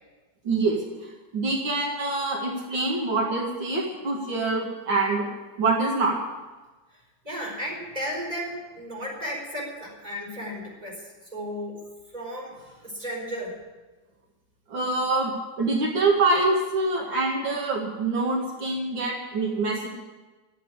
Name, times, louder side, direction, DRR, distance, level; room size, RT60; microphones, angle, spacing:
voice 1, 0.4-5.3 5.6-6.2 14.7-15.3 15.6-19.9, right 3 dB, 75° right, -1 dB, 2.7 m, -25 dB
voice 2, 6.9-13.6, equal, 20° right, -2 dB, 4.9 m, -35 dB
13.0 x 8.8 x 9.9 m, 1.2 s
omnidirectional pair, 2.1 m